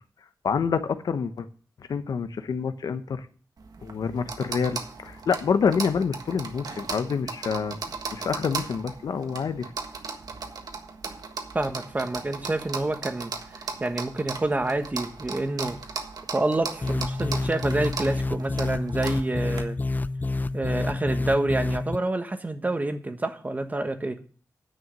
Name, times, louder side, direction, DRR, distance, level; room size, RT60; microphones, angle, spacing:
voice 1, 0.4-1.5 1.9-3.2 3.8-7.8 8.1-9.7, left 6 dB, 90° left, 10 dB, 0.9 m, -27 dB
sound 1, 3.6-19.6, right 4 dB, 80° right, 1.5 m, -37 dB
voice 2, 11.5-13.3 13.8-15.8 16.3-19.8 20.5-24.2, right 2 dB, 25° right, 8 dB, 1.2 m, -28 dB
sound 2, 16.8-22.0, left 2 dB, 25° left, 0.5 m, -28 dB
10.0 x 6.2 x 7.7 m, 0.42 s
wide cardioid pair, 125°, 7 cm